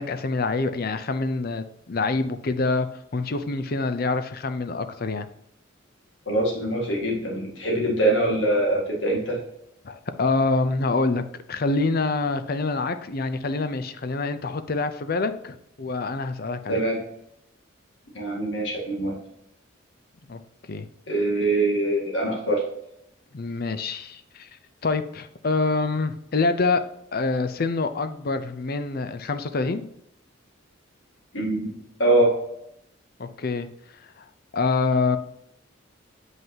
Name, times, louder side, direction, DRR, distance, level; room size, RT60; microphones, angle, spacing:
voice 1, 0.0-2.9 3.1-5.3 9.8-16.8 20.3-20.4 20.7-20.9 23.3-24.5 24.8-26.8 27.1-29.8 33.2-33.7 34.5-35.2, left 3 dB, 50° left, 10 dB, 0.6 m, -26 dB
voice 2, 6.3-9.4 16.7-17.0 18.2-19.1 21.1-22.6 31.3-31.7 32.0-32.3, right 1 dB, 65° left, -1 dB, 2.0 m, -23 dB
7.7 x 5.5 x 2.9 m, 0.76 s
head